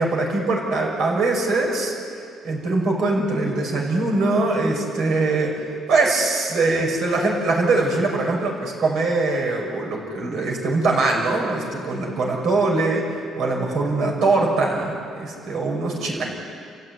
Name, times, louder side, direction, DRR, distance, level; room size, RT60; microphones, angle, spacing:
voice 1, 0.0-1.9 2.4-16.3, right 3 dB, 60° right, -1 dB, 6.3 m, -22 dB
29.5 x 15.5 x 9.6 m, 2.4 s
cardioid pair, 155°, 0 cm